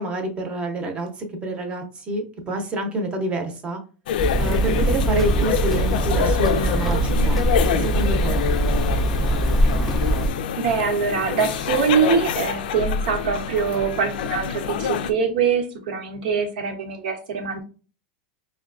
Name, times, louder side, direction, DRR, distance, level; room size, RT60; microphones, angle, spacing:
voice 1, 0.0-3.8 4.4-7.4 7.7-8.4, right 1 dB, 20° right, 4 dB, 0.7 m, -27 dB
sound 1, 4.1-15.1, left 7 dB, 80° left, 0.3 m, -26 dB
Hammer, 4.2-10.3, right 1 dB, ahead, 0.4 m, -22 dB
voice 2, 10.6-17.6, right 6 dB, 80° right, 3 dB, 1.0 m, -23 dB
5.0 x 2.2 x 2.5 m, 0.37 s
supercardioid pair, 150°, 5 cm